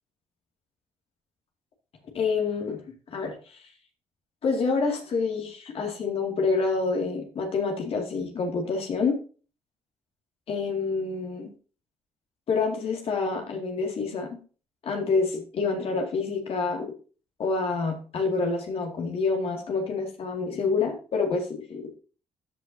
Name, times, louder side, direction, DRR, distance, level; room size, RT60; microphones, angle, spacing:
voice 1, 2.1-2.8 3.1-3.6 4.4-9.2 10.5-11.5 12.5-14.3 14.8-16.9 17.4-21.8, left 4 dB, 60° left, 3 dB, 2.2 m, -27 dB
14.0 x 5.6 x 2.7 m, 0.37 s
cardioid pair, 80°, 11 cm